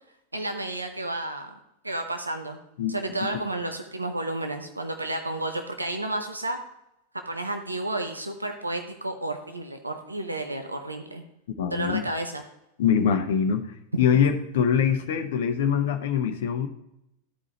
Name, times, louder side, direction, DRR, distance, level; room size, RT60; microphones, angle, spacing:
voice 1, 0.3-1.5 1.8-2.6 2.9-6.6 7.1-11.2 11.7-12.4, right 2 dB, 80° right, 5 dB, 0.8 m, -31 dB
voice 2, 11.6-12.0 12.8-13.7 14.0-16.7, left 7 dB, 55° left, 8 dB, 0.8 m, -23 dB
13.5 x 4.8 x 3.0 m, 0.83 s
figure-of-eight pair, 90°, 0 cm